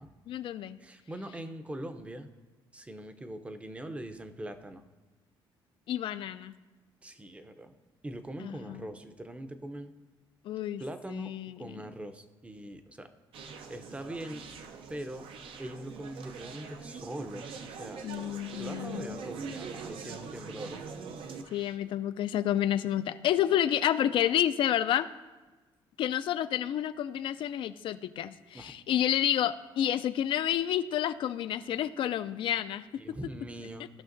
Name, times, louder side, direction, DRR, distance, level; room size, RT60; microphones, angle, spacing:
voice 1, 0.3-0.8 5.9-6.5 8.4-8.9 10.4-10.8 11.1-11.8 18.0-19.2 21.5-25.1 26.0-33.0, left 11 dB, 65° left, 13 dB, 0.4 m, -30 dB
voice 2, 0.8-2.3 2.7-4.8 7.0-7.8 8.0-9.9 10.8-11.3 11.6-13.1 13.7-14.4 14.9-15.3 15.6-18.0 18.6-20.8 28.5-28.7 33.0-33.9, right 1 dB, 15° right, 8 dB, 0.6 m, -42 dB
Conversation, 13.3-21.8, right 5 dB, 75° right, 0.7 m, -43 dB
15.5 x 5.7 x 2.6 m, 1.2 s
cardioid pair, 110°, 9 cm